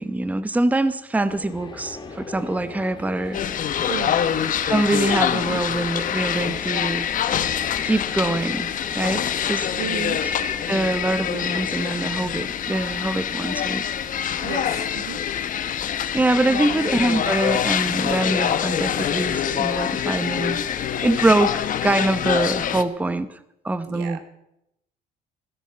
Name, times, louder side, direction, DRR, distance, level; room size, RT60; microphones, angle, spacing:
voice 1, 0.0-3.4 4.7-7.1 7.8-9.7 10.2-13.8 16.1-20.6 21.0-23.4 23.6-24.2, right 2 dB, 10° right, 13 dB, 0.8 m, -24 dB
sound 1, 1.3-11.8, left 3 dB, 25° left, 2.4 m, -39 dB
sound 2, 3.3-22.8, left 9 dB, 50° left, 1.0 m, -25 dB
voice 2, 3.9-4.2 9.2-9.3 9.8-10.2 14.4-15.2 16.5-16.8 23.9-24.2, right 8 dB, 85° right, 9 dB, 1.7 m, -33 dB
15.5 x 14.0 x 5.7 m, 0.80 s
cardioid pair, 110°, 17 cm